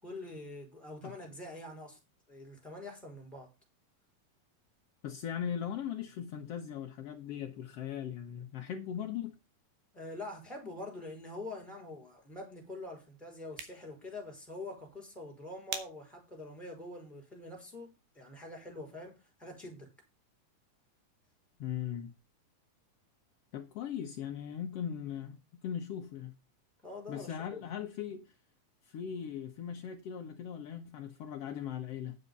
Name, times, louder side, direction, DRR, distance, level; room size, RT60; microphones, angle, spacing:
voice 1, 0.0-2.0 2.3-3.5 9.9-19.9 26.8-27.7, left 2 dB, ahead, 4.1 m, -45 dB
voice 2, 5.0-9.3 21.6-22.1 23.5-26.3 27.1-28.3 28.8-32.2, left 9 dB, 75° left, 1.4 m, -39 dB
sound 1, 13.3-18.4, right 7 dB, 85° right, 3.3 m, -49 dB
9.9 x 6.8 x 5.3 m
omnidirectional pair, 4.0 m